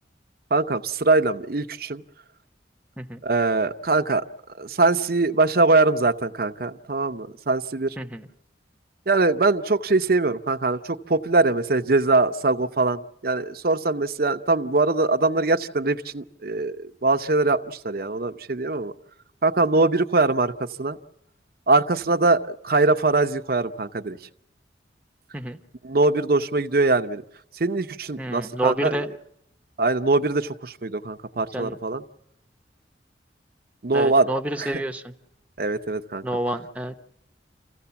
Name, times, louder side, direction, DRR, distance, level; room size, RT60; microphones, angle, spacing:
voice 1, 0.5-2.0 3.2-4.2 4.6-8.0 9.1-18.9 19.4-21.0 21.7-24.2 25.8-27.2 27.6-29.0 29.8-32.0 33.8-34.3 34.6-34.7 35.6-36.2, right 3 dB, 55° right, 8 dB, 0.7 m, -22 dB
voice 2, 8.0-8.3 25.3-25.6 28.2-29.1 31.5-31.8 33.9-35.1 36.2-37.0, right 1 dB, 10° right, 4 dB, 0.8 m, -28 dB
27.0 x 15.5 x 7.0 m, 0.81 s
head